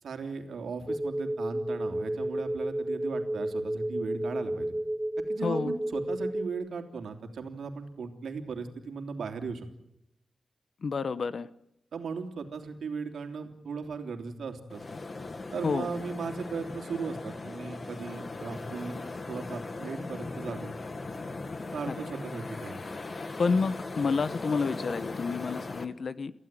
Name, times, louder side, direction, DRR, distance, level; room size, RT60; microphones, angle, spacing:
voice 1, 0.0-4.7 5.2-9.7 11.9-14.8 15.5-19.0 19.3-20.8 21.7-22.8, right 5 dB, 90° right, 4 dB, 3.2 m, -37 dB
sound 1, 0.9-6.5, right 1 dB, 5° left, 4.1 m, -32 dB
voice 2, 5.4-5.7 10.8-11.5 15.6-15.9 23.4-26.3, left 4 dB, 60° left, 15 dB, 1.1 m, -29 dB
sound 2, 14.7-25.8, left 3 dB, 40° left, 2.0 m, -39 dB
29.5 x 15.5 x 9.1 m, 0.83 s
wide cardioid pair, 100°, 0 cm